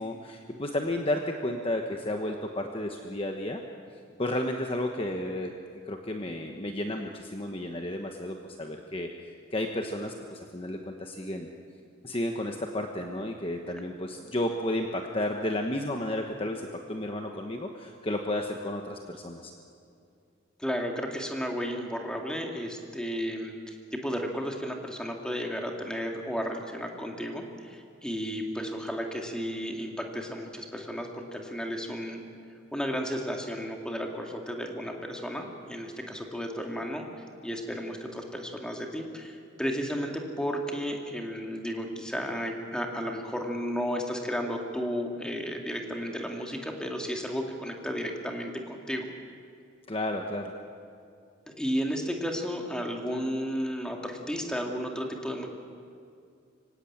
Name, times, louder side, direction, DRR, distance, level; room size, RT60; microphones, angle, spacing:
voice 1, 0.0-3.6 4.2-5.5 5.9-11.5 12.0-16.6 16.9-19.5 49.9-50.5, left 1 dB, 30° left, 3 dB, 1.1 m, -32 dB
voice 2, 20.6-32.2 32.7-37.1 37.4-49.1 51.5-55.5, equal, 5° left, 1 dB, 2.2 m, -33 dB
25.0 x 17.0 x 8.8 m, 2.4 s
head